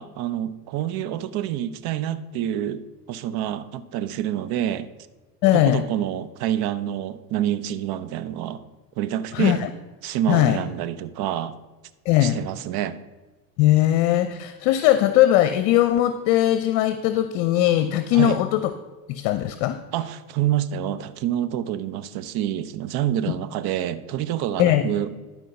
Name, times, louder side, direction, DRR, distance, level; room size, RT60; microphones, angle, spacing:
voice 1, 0.0-4.9 5.5-8.6 9.0-9.6 10.0-11.6 12.2-13.0 18.1-18.4 19.9-25.2, right 11 dB, 50° right, 14 dB, 0.8 m, -27 dB
voice 2, 5.4-5.8 9.3-9.7 10.3-10.6 12.1-12.4 13.6-18.6 19.1-19.8 24.6-24.8, left 13 dB, 60° left, 10 dB, 0.8 m, -19 dB
11.5 x 4.6 x 5.4 m, 1.2 s
supercardioid pair, 100°, 48 cm